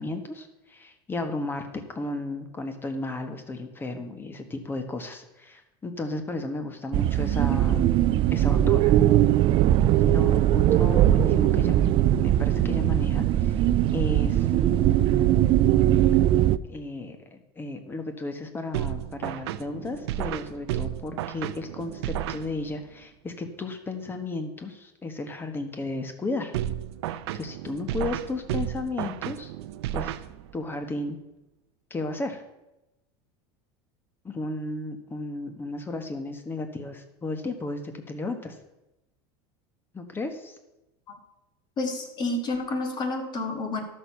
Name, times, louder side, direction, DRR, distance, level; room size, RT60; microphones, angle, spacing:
voice 1, 0.0-8.9 10.0-11.8 12.2-15.6 16.6-26.5 27.1-29.5 29.9-30.1 30.5-31.2 31.9-32.4 34.2-38.6 39.9-40.6, left 2 dB, 15° left, 7 dB, 1.4 m, -34 dB
sound 1, 6.9-16.6, right 12 dB, 40° right, 0.4 m, -20 dB
sound 2, 18.7-22.9 26.5-30.7, right 11 dB, 85° right, 0.6 m, -33 dB
voice 2, 41.8-43.8, left 2 dB, 35° left, 4 dB, 2.1 m, -29 dB
12.5 x 6.6 x 5.7 m, 0.95 s
supercardioid pair, 130°, 13 cm